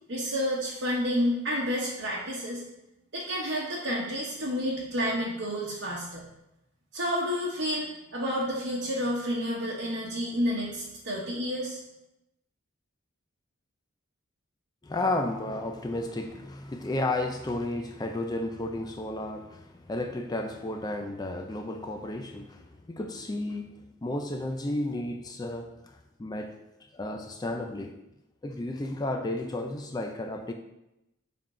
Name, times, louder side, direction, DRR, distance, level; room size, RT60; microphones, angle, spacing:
voice 1, 0.1-2.6 3.1-6.3 6.9-11.8, equal, 65° right, -6 dB, 1.1 m, -30 dB
voice 2, 14.8-26.6 26.9-28.0 28.4-30.5, left 2 dB, 20° left, 5 dB, 0.3 m, -33 dB
6.9 x 3.8 x 4.3 m, 0.90 s
head